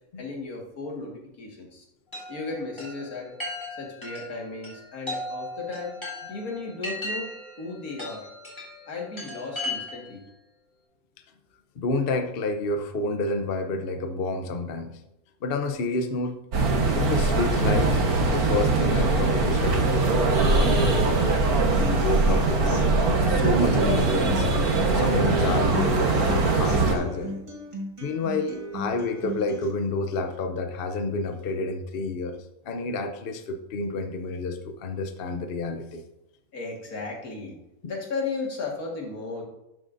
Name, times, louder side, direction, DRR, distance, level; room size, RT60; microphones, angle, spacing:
voice 1, 0.2-1.8 2.3-3.3 3.8-5.9 6.3-7.3 7.6-8.2 8.9-10.2 36.5-37.6 37.8-39.4, left 3 dB, 80° left, -1 dB, 2.3 m, -35 dB
Chime, 2.1-10.2, left 1 dB, 20° left, 3.1 m, -37 dB
voice 2, 11.8-14.9 15.4-16.4 16.9-21.3 21.9-22.9 23.3-24.5 24.9-27.3 28.0-32.4 32.6-36.0, left 3 dB, 50° left, 6 dB, 0.8 m, -29 dB
sound 1, 16.5-26.9, right 3 dB, 85° right, 1.8 m, -22 dB
Human voice / Acoustic guitar, 21.7-29.7, equal, 20° right, 1.6 m, -36 dB
11.5 x 7.6 x 2.6 m, 0.86 s
omnidirectional pair, 1.5 m